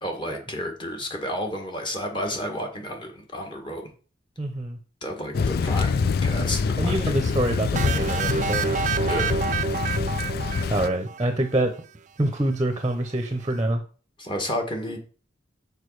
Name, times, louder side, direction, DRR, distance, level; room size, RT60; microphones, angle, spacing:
voice 1, 0.0-3.9 5.0-7.4 9.0-9.4 14.2-15.0, equal, 25° left, 2 dB, 1.6 m, -31 dB
voice 2, 4.4-4.8 6.8-8.8 10.7-11.7 12.2-13.8, right 1 dB, 25° right, 6 dB, 0.8 m, -26 dB
Thunder / Rain, 5.3-10.9, left 5 dB, 55° left, 0.4 m, -25 dB
sound 1, 7.7-11.5, right 6 dB, 40° right, 0.4 m, -28 dB
6.6 x 5.1 x 4.8 m, 0.39 s
head